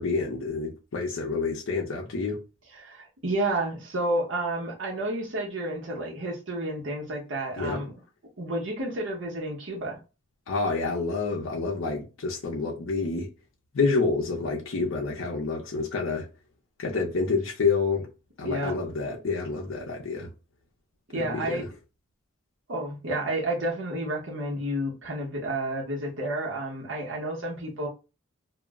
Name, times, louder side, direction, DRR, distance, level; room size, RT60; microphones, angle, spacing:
voice 1, 0.0-2.4 7.6-7.8 10.5-13.3 13.7-16.3 16.8-18.1 18.4-20.3 21.3-21.7, left 4 dB, 75° left, 0.6 m, -28 dB
voice 2, 2.8-7.9 8.4-10.0 18.4-18.8 21.1-21.7 22.7-27.9, right 1 dB, 65° right, 0.9 m, -30 dB
2.3 x 2.0 x 3.4 m
head